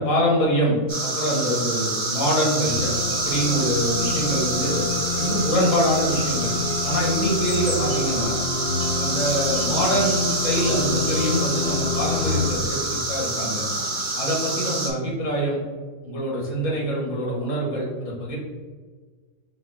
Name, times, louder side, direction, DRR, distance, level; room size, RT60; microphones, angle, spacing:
voice 1, 0.0-2.9 3.2-4.9 5.2-6.5 6.8-8.3 9.0-13.7 14.2-15.6 16.0-18.4, equal, 60° left, -2 dB, 1.6 m, -24 dB
sound 1, 0.9-14.9, right 2 dB, 30° right, 0.6 m, -27 dB
sound 2, 2.6-13.3, left 4 dB, 30° left, 1.7 m, -28 dB
4.9 x 2.0 x 4.7 m, 1.5 s
omnidirectional pair, 1.5 m